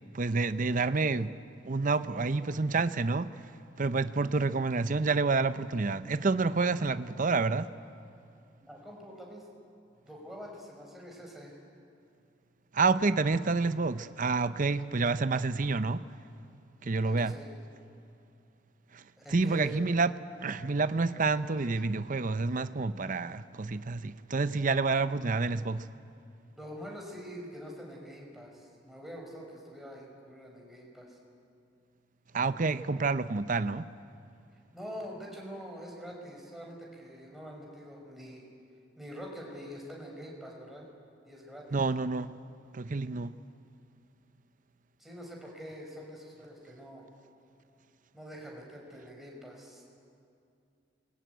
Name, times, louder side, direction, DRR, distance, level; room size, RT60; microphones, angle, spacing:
voice 1, 0.1-1.3 1.6-3.3 3.8-7.7 12.7-16.0 16.8-17.4 18.9-19.0 19.3-20.1 20.4-25.9 32.3-33.9 41.7-42.3 42.7-43.3, right 3 dB, 45° right, 0.7 m, -28 dB
voice 2, 8.6-9.5 10.0-11.5 17.0-17.5 19.2-19.8 23.1-23.2 26.5-31.2 34.7-38.4 39.0-40.8 41.3-41.8 45.0-47.1 48.1-49.8, equal, ahead, 5.6 m, -45 dB
28.0 x 21.5 x 9.3 m
head